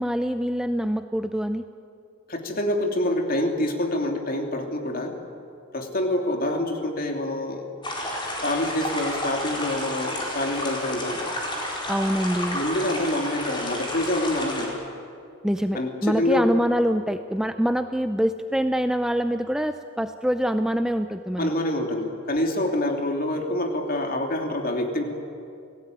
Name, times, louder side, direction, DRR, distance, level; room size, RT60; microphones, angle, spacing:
voice 1, 0.0-1.6 11.9-12.6 15.4-21.5, equal, 5° right, 8 dB, 0.5 m, -25 dB
voice 2, 2.3-5.2 5.7-7.6 8.4-11.2 12.5-14.7 15.7-16.4 21.4-25.0, left 1 dB, 45° left, 3 dB, 2.9 m, -26 dB
sound 1, 7.8-14.7, left 1 dB, 20° left, 4.6 m, -31 dB
29.0 x 17.5 x 9.3 m, 2.5 s
head